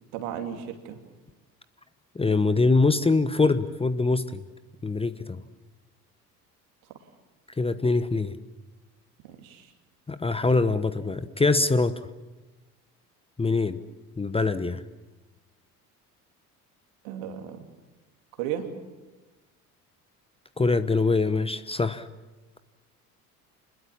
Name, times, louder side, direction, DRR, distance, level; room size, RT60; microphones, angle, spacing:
voice 1, 0.1-1.0 9.2-9.7 17.0-17.6 18.4-18.7, right 10 dB, 65° right, 6 dB, 2.9 m, -34 dB
voice 2, 2.1-4.4 4.8-5.4 7.6-8.4 10.1-12.0 13.4-13.8 14.2-14.8 20.6-22.1, left 3 dB, 10° left, 13 dB, 0.9 m, -23 dB
27.0 x 21.0 x 7.4 m, 1.2 s
figure-of-eight pair, 65°, 46 cm